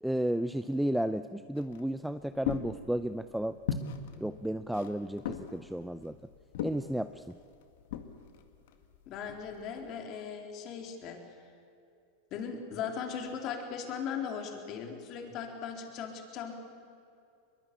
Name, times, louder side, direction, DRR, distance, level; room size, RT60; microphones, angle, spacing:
voice 1, 0.0-3.6 4.2-6.1 6.6-7.2, right 1 dB, 5° right, 11 dB, 0.6 m, -33 dB
sound 1, 1.6-9.9, left 8 dB, 70° left, 2.0 m, -40 dB
voice 2, 9.1-11.2 12.3-16.5, left 7 dB, 45° left, 3 dB, 3.9 m, -38 dB
22.0 x 22.0 x 8.4 m, 2.6 s
hypercardioid pair, 105°, 0 cm